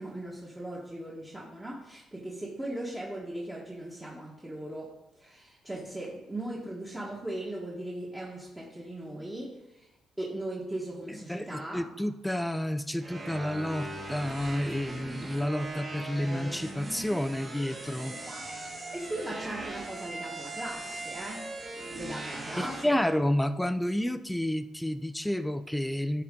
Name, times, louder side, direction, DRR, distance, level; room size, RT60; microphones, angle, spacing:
voice 1, 0.0-4.9 5.2-9.9 10.2-11.9 18.1-18.5 18.9-21.5 21.9-23.1, right 1 dB, 15° right, -5 dB, 1.5 m, -38 dB
voice 2, 11.3-18.1 22.6-26.2, left 1 dB, 5° left, 10 dB, 0.5 m, -30 dB
sound 1, 13.0-22.9, right 2 dB, 35° right, 1.8 m, -39 dB
11.5 x 4.2 x 3.8 m, 0.99 s
cardioid pair, 85°, 0 cm